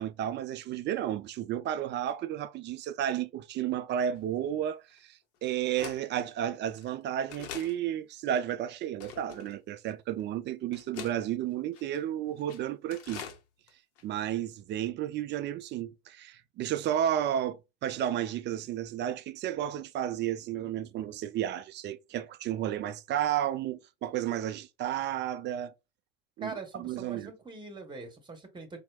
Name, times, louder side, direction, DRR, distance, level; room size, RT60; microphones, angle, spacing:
voice 1, 0.0-13.2 14.0-25.7 26.4-27.3, right 11 dB, 35° right, 0.4 m, -32 dB
sound 1, 4.2-4.3 5.0-5.1 5.8-6.0 6.7-6.9 7.3-7.7 8.3-8.4 9.0-9.5 10.2-10.3 10.7-11.2 11.7-12.0 12.4-12.6 12.9-13.4 13.7-13.8 14.0-14.1, left 7 dB, 50° left, 0.8 m, -43 dB
voice 2, 26.4-28.8, right 4 dB, 15° right, 1.1 m, -42 dB
4.3 x 2.1 x 2.3 m
hypercardioid pair, 85°, 31 cm